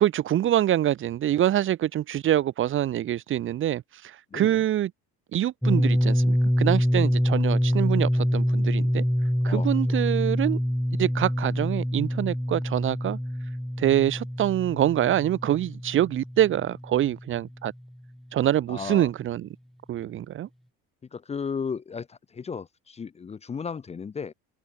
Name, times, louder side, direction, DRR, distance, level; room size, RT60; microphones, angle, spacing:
voice 1, 0.0-3.8 4.3-4.9 5.3-9.0 9.4-10.6 11.0-13.2 13.8-17.7 18.3-19.5 19.9-20.5, right 12 dB, 40° right, 0.9 m, -25 dB
voice 2, 4.3-4.7 9.4-10.0 18.7-19.1 21.1-24.3, left 6 dB, 20° left, 0.8 m, -35 dB
sound 1, 5.6-17.4, equal, ahead, 1.4 m, -25 dB
open air
cardioid pair, 125°, 31 cm